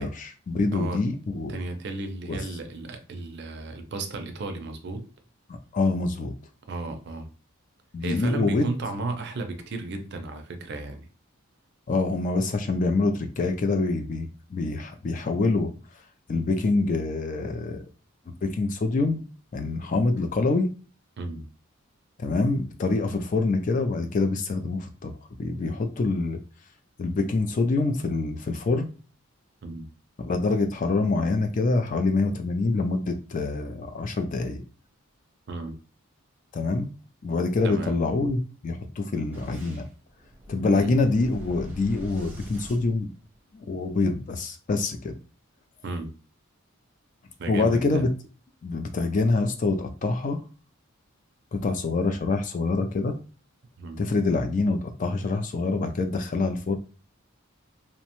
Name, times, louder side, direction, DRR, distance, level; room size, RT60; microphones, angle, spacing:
voice 1, 0.0-1.6 2.3-2.4 5.5-6.3 7.9-8.7 11.9-15.7 16.3-17.8 18.4-19.2 19.5-20.7 22.2-25.1 25.4-26.4 27.0-28.9 30.2-34.6 36.5-36.9 37.2-39.9 40.5-43.1 43.5-45.2 47.5-48.1 48.6-50.4 51.5-53.2 54.0-56.8, left 3 dB, 35° left, 0.3 m, -25 dB
voice 2, 1.5-5.1 6.7-7.3 8.0-11.1 21.2-21.5 29.6-29.9 35.5-35.8 37.6-38.0 40.7-40.9 45.8-46.1 47.4-48.0 53.8-54.0, right 2 dB, 50° right, 0.4 m, -34 dB
Boom, 39.3-43.7, right 1 dB, 10° right, 0.7 m, -44 dB
2.7 x 2.1 x 2.9 m
head